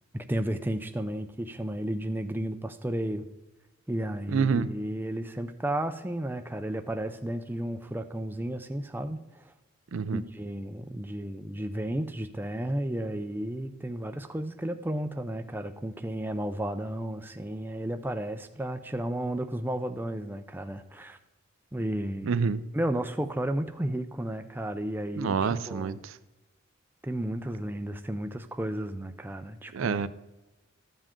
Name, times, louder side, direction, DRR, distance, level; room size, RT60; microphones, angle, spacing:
voice 1, 0.1-3.3 3.9-9.5 10.1-21.2 21.7-22.4 22.7-26.0 27.0-30.0, right 1 dB, 10° right, 7 dB, 0.4 m, -33 dB
voice 2, 4.3-4.7 9.9-10.2 22.2-22.6 25.2-26.0 29.7-30.1, right 5 dB, 70° right, 14 dB, 0.4 m, -27 dB
13.5 x 7.5 x 3.7 m, 1.1 s
head